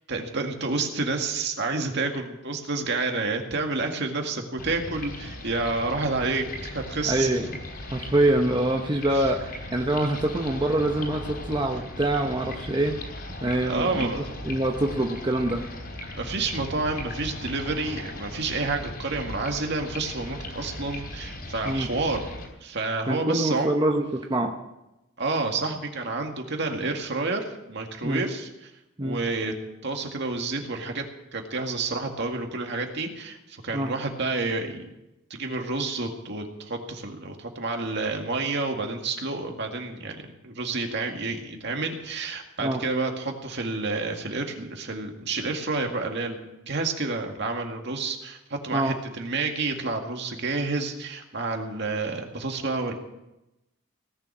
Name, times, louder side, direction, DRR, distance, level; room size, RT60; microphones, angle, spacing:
voice 1, 0.1-7.3 9.1-9.2 13.6-14.3 16.1-22.2 22.6-23.7 25.2-28.7 29.0-29.5 29.8-31.1 31.3-34.9 35.3-46.4 46.7-52.9, right 3 dB, 55° right, 3 dB, 2.0 m, -29 dB
sound 1, 4.6-22.5, left 1 dB, 50° left, 3.9 m, -38 dB
voice 2, 7.1-7.5 7.9-13.0 13.4-14.1 14.4-15.6 21.6-21.9 23.1-24.5 28.0-28.2 29.0-29.2 33.7-33.9 42.6-42.8 48.7-49.0, right 1 dB, 20° right, 2 dB, 0.9 m, -25 dB
18.5 x 7.2 x 9.6 m, 0.93 s
head